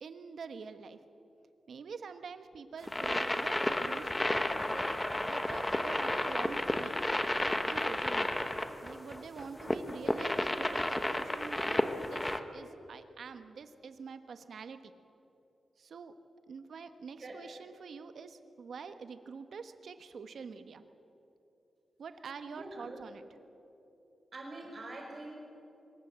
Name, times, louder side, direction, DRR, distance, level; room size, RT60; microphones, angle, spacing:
voice 1, 0.0-1.0 1.7-5.0 5.3-6.9 7.6-8.5 8.8-14.9 15.8-16.1 16.5-20.8 22.0-23.2, right 5 dB, 65° right, 10 dB, 1.3 m, -46 dB
sound 1, 2.8-12.4, left 1 dB, 15° left, 1.1 m, -32 dB
voice 2, 22.5-23.0 24.3-25.3, right 2 dB, 40° right, 0 dB, 5.2 m, -44 dB
24.0 x 22.5 x 7.6 m, 2.9 s
wide cardioid pair, 150°, 0 cm